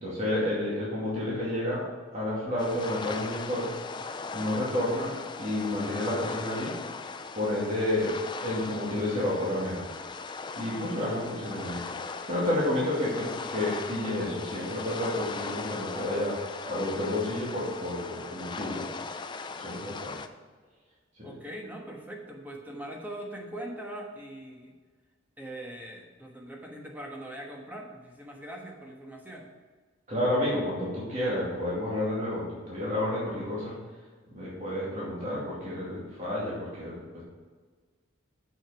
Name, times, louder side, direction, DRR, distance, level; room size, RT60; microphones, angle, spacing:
voice 1, 0.0-3.7 4.3-5.1 5.4-6.7 7.3-9.8 10.5-11.8 12.3-16.4 16.7-18.9 19.6-20.1 21.2-21.3 30.1-33.7 34.3-37.2, left 1 dB, 35° right, -7 dB, 2.4 m, -30 dB
sound 1, 2.6-20.3, left 4 dB, 20° left, 0.3 m, -39 dB
voice 2, 21.2-24.7 25.4-29.5, right 1 dB, 10° right, 0 dB, 1.3 m, -41 dB
7.0 x 6.3 x 5.8 m, 1.4 s
head